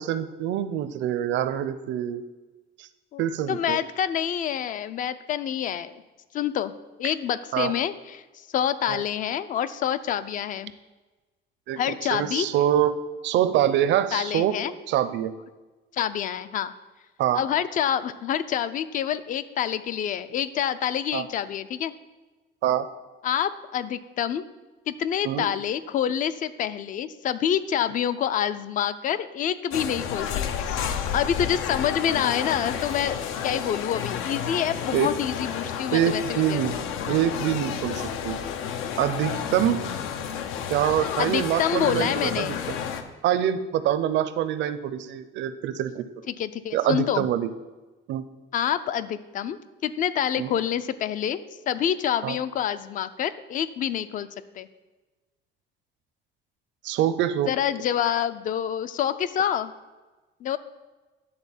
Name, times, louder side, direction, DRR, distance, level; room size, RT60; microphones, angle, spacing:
voice 1, 0.0-2.2 2.8-2.9 3.2-3.8 7.5-7.7 8.9-9.0 11.7-13.0 13.2-14.6 14.9-15.3 17.2-17.4 21.1-21.3 22.6-22.9 25.2-25.5 34.9-35.1 35.9-36.7 37.1-38.4 39.0-39.9 40.7-42.6 43.2-46.0 46.7-47.5 48.1-48.2 50.4-50.5 52.2-52.4 56.8-57.5, right 11 dB, 65° right, 12 dB, 0.6 m, -25 dB
voice 2, 3.1-6.0 6.3-6.7 7.0-8.2 8.5-10.7 11.8-12.5 14.1-14.7 15.9-16.7 17.3-21.9 23.2-24.5 24.9-36.6 41.2-42.6 46.3-47.3 48.5-51.4 51.7-54.3 54.6-54.7 57.5-59.7 60.4-60.6, left 9 dB, 40° left, 14 dB, 0.4 m, -27 dB
sound 1, 29.7-43.0, left 8 dB, 85° left, 0.8 m, -31 dB
10.5 x 4.1 x 7.1 m, 1.2 s
cardioid pair, 175°, 21 cm